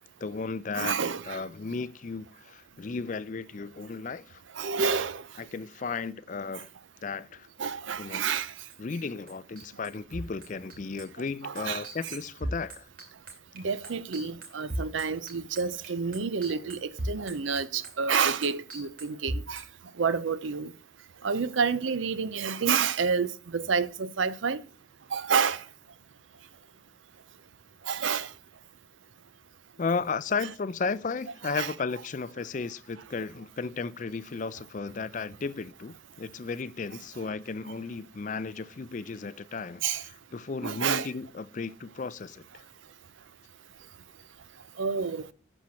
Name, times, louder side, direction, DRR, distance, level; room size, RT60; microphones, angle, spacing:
voice 1, 0.2-1.0 1.2-4.4 5.4-6.7 7.0-7.5 8.0-8.2 8.8-12.9 29.8-42.6, left 4 dB, 40° left, 0.4 m, -34 dB
voice 2, 0.7-1.4 4.6-5.2 7.6-8.5 11.4-12.2 13.6-19.6 20.0-20.7 21.2-24.6 25.1-25.6 27.9-28.3 31.4-31.7 39.8-40.0 40.6-41.1 44.8-45.3, right 6 dB, 90° right, 0.6 m, -29 dB
sound 1, 8.1-9.0 9.3-19.6, right 1 dB, 50° right, 2.5 m, -36 dB
11.5 x 4.4 x 6.2 m
head